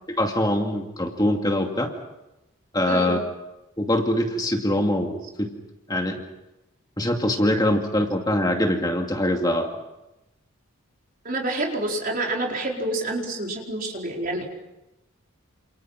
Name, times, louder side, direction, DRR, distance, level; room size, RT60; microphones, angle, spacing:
voice 1, 0.1-1.9 2.7-3.2 3.8-5.5 5.9-6.2 7.0-9.8, left 1 dB, 20° left, 2 dB, 2.4 m, -23 dB
voice 2, 2.9-3.2 11.2-14.5, right 2 dB, 40° right, 0 dB, 4.9 m, -28 dB
29.0 x 28.0 x 6.0 m, 0.95 s
head